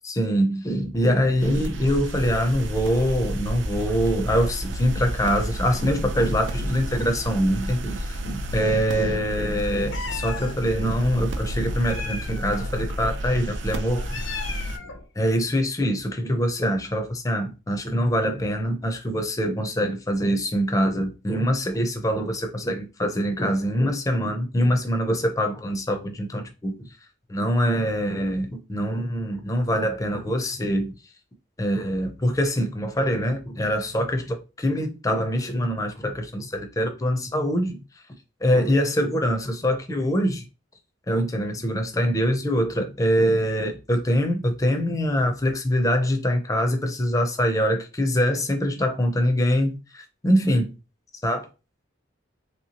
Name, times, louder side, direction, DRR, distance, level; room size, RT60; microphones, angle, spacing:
voice 1, 0.0-14.2 15.2-26.9 27.3-30.9 31.6-37.8 38.4-40.4 41.1-50.7 51.2-51.4, equal, 15° left, 0.5 m, -24 dB
sound 1, 1.4-14.8, equal, 65° right, 0.4 m, -31 dB
Meow, 9.9-10.5 11.8-12.7 13.9-15.1, left 5 dB, 75° left, 0.5 m, -35 dB
3.1 x 2.9 x 2.8 m
head